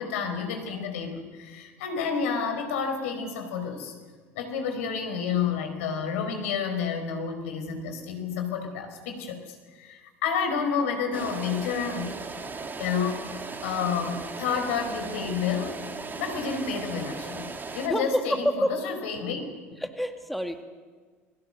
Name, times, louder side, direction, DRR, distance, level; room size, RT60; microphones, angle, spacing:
voice 1, 0.0-3.9 4.3-12.1 12.8-15.8 16.2-19.4, left 6 dB, 70° left, 6 dB, 4.8 m, -30 dB
sound 1, 11.1-17.9, right 4 dB, 25° right, 3.1 m, -37 dB
voice 2, 17.9-18.8 19.8-20.6, equal, ahead, 6 dB, 2.1 m, -28 dB
29.0 x 22.0 x 6.8 m, 1.5 s
figure-of-eight pair, 65°, 7 cm